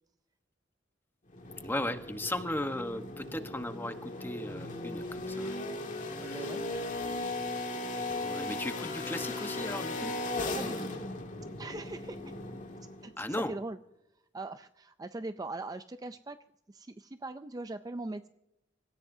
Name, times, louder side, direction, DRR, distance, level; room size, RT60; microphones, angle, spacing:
sound 1, 1.3-13.1, left 2 dB, 45° left, 2.2 m, -37 dB
voice 1, 1.6-5.6 6.3-6.4 8.2-10.1 13.2-13.5, left 1 dB, 10° left, 8 dB, 1.1 m, -36 dB
voice 2, 6.2-6.6 10.4-11.0 11.6-12.2 13.0-13.8 14.3-16.4 16.7-18.3, right 2 dB, 20° right, 10 dB, 0.4 m, -41 dB
26.0 x 15.5 x 2.7 m, 0.87 s
head